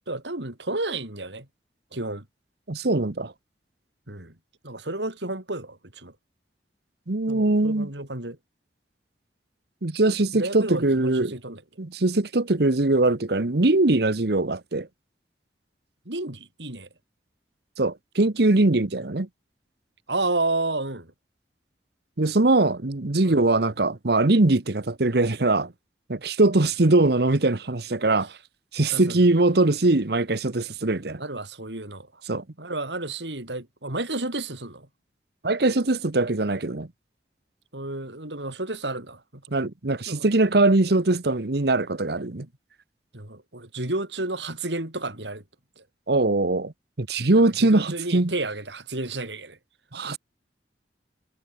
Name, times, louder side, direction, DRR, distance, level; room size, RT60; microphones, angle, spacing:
voice 1, 0.1-1.5 1.9-2.2 4.1-4.3 4.6-6.1 7.3-8.4 10.3-11.6 16.0-16.9 20.1-21.1 23.2-23.3 28.9-29.2 31.2-32.2 32.6-34.9 37.7-39.4 39.9-40.3 43.1-45.4 45.8-45.9 47.4-49.6, right 2 dB, 85° right, 5.0 m, -31 dB
voice 2, 2.7-3.3 7.1-7.9 9.8-11.3 11.8-14.9 17.8-19.3 22.2-25.7 26.1-28.3 28.7-31.2 32.3-32.4 35.4-36.9 39.5-42.5 46.1-46.7 47.0-48.3 49.9-50.2, right 2 dB, 65° right, 1.2 m, -21 dB
head